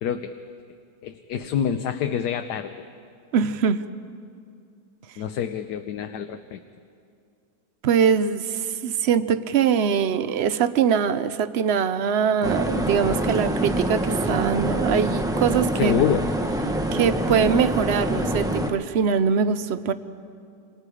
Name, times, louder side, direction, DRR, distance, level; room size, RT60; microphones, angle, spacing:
voice 1, 0.0-0.4 1.0-2.7 5.2-6.6 15.8-16.3, left 9 dB, 70° left, 7 dB, 1.3 m, -26 dB
voice 2, 3.3-3.8 7.8-16.0 16.9-19.9, right 7 dB, 60° right, 12 dB, 0.7 m, -22 dB
sound 1, 12.4-18.7, right 1 dB, 5° right, 0.8 m, -25 dB
28.5 x 27.0 x 4.9 m, 2.4 s
omnidirectional pair, 1.9 m